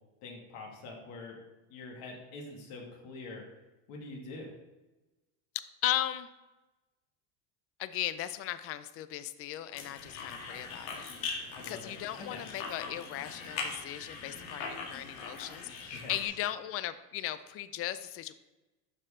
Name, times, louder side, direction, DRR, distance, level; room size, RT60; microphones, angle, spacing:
voice 1, 0.2-1.4 1.7-3.4 3.9-4.5 11.5-12.4 15.9-16.2, left 3 dB, 65° left, 0 dB, 2.5 m, -45 dB
voice 2, 5.8-6.3 7.8-11.1 11.7-18.3, left 13 dB, 35° left, 13 dB, 0.4 m, -37 dB
sound 1, 9.7-16.3, left 4 dB, 80° left, 1.7 m, -41 dB
12.0 x 4.6 x 3.7 m, 1.1 s
supercardioid pair, 120°, 41 cm